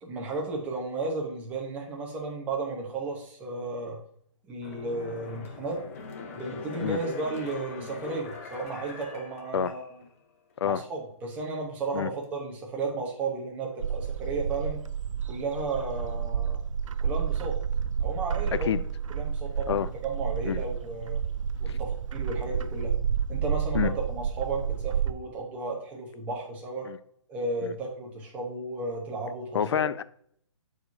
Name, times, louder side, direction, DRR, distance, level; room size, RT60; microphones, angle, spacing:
voice 1, 0.0-4.0 4.5-5.8 6.4-9.8 10.6-14.8 15.3-16.6 17.0-17.6 18.0-18.7 19.1-21.2 21.6-22.9 23.3-26.9 27.3-29.8, right 3 dB, 10° right, 1.1 m, -34 dB
sound 1, 4.6-10.1 10.5-10.6, left 4 dB, 30° left, 0.8 m, -42 dB
Bird, 13.8-25.1, right 7 dB, 90° right, 0.5 m, -30 dB
voice 2, 29.5-30.0, left 9 dB, 60° left, 0.4 m, -27 dB
11.5 x 4.9 x 2.8 m
hypercardioid pair, 170°, 16 cm